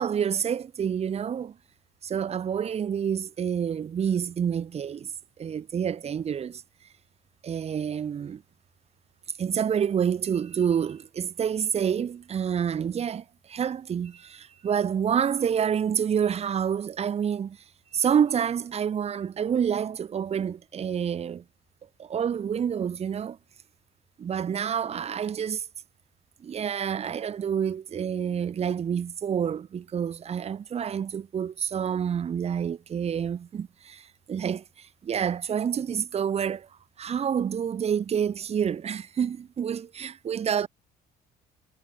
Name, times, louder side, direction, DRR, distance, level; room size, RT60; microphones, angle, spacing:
voice 1, 0.0-1.6 2.0-5.1 5.4-6.6 7.4-8.4 9.4-17.6 17.9-21.4 22.0-23.4 24.2-25.7 26.4-36.7 37.0-40.7, right 8 dB, 40° right, 1.1 m, -28 dB
cardioid pair, 110°, 17 cm